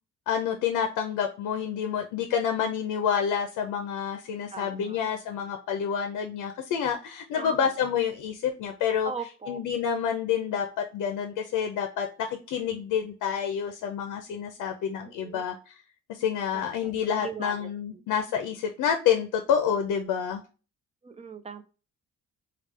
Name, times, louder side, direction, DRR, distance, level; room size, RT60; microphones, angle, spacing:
voice 1, 0.3-9.1 9.5-15.8 16.1-20.4, left 8 dB, 85° left, 6 dB, 0.6 m, -28 dB
voice 2, 4.5-5.0 7.3-7.6 9.0-9.6 15.0-15.4 16.5-16.9 17.2-17.7 21.0-21.6, right 5 dB, 20° right, 9 dB, 0.5 m, -39 dB
3.5 x 2.4 x 3.2 m, 0.33 s
cardioid pair, 90°, 30 cm